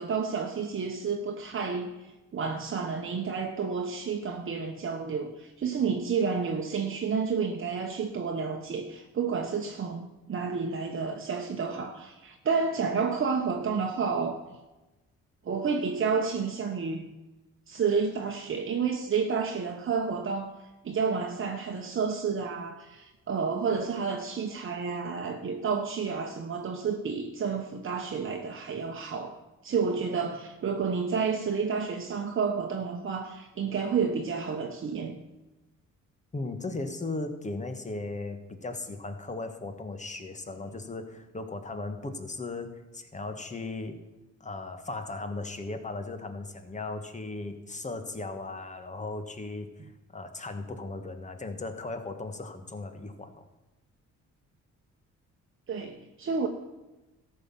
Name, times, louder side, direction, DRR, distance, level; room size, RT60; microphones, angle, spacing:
voice 1, 0.0-14.4 15.4-17.1 17.7-20.5 20.8-29.4 29.6-35.2 55.7-56.5, right 5 dB, 45° right, 2 dB, 1.1 m, -30 dB
voice 2, 36.3-44.0 44.4-53.4, left 3 dB, 25° left, 7 dB, 1.5 m, -37 dB
13.5 x 5.8 x 7.3 m, 1.1 s
cardioid pair, 90°, 30 cm